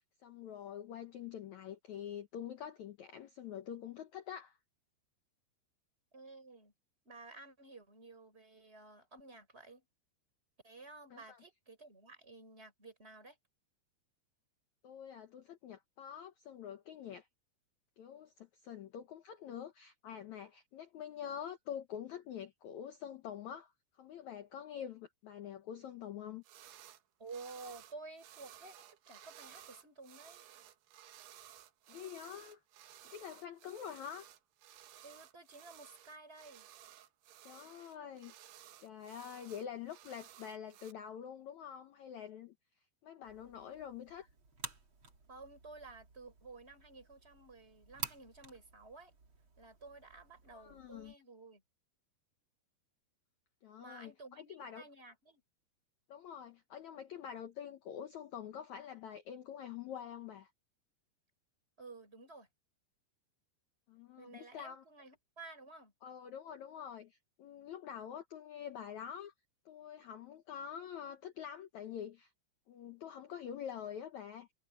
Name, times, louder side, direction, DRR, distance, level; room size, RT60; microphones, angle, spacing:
voice 1, 0.0-4.6 11.1-11.4 14.8-17.3 18.0-23.7 24.0-26.4 31.9-32.6 33.0-34.3 37.4-38.3 38.8-42.5 43.0-44.3 50.5-51.1 53.6-54.8 56.1-60.5 63.9-64.8 66.0-69.3 69.6-72.3 72.7-74.5, left 9 dB, 85° left, 1.6 m, -46 dB
voice 2, 6.1-6.7 7.0-9.8 10.6-13.4 27.2-30.4 35.0-36.7 45.3-49.1 49.6-51.6 53.8-55.4 61.8-62.5 64.2-65.9, right 3 dB, 15° right, 5.0 m, -53 dB
sound 1, 26.4-27.0 27.3-40.9, right 11 dB, 75° right, 3.4 m, -57 dB
sound 2, 43.2-51.1, right 4 dB, 30° right, 3.4 m, -51 dB
omnidirectional pair, 4.9 m